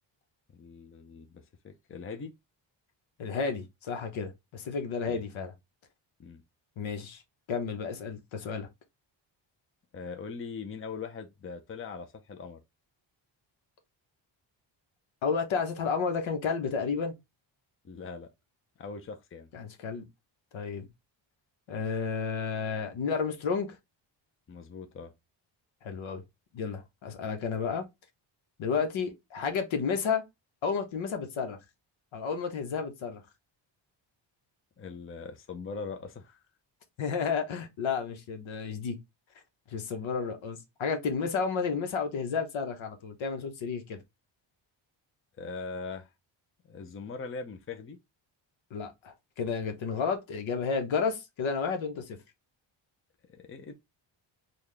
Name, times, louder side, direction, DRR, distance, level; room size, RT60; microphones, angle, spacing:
voice 1, 0.5-2.3 5.1-5.2 6.2-6.4 9.9-12.6 17.8-18.3 18.8-19.5 24.5-25.1 34.8-36.4 45.4-46.1 46.7-48.0 53.3-53.7, left 4 dB, 25° left, 0.6 m, -41 dB
voice 2, 3.2-5.5 6.8-7.2 7.5-8.7 15.2-17.1 19.5-20.0 20.5-20.9 21.7-23.8 25.8-26.2 26.5-27.8 28.6-30.2 30.6-31.6 32.1-33.2 37.0-39.0 39.7-44.0 48.7-52.2, left 5 dB, 75° left, 1.1 m, -31 dB
4.0 x 2.4 x 3.3 m
cardioid pair, 105°, 47 cm